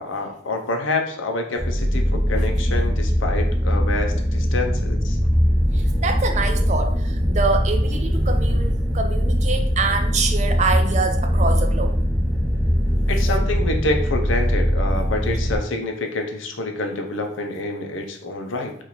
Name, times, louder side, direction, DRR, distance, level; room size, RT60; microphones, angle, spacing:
voice 1, 0.0-5.2 13.1-18.8, left 2 dB, 80° left, 4 dB, 0.6 m, -27 dB
sound 1, 1.6-15.6, equal, 5° left, 0.7 m, -21 dB
voice 2, 5.7-12.0, right 4 dB, 35° right, 5 dB, 0.4 m, -25 dB
4.0 x 2.5 x 3.0 m, 0.66 s
head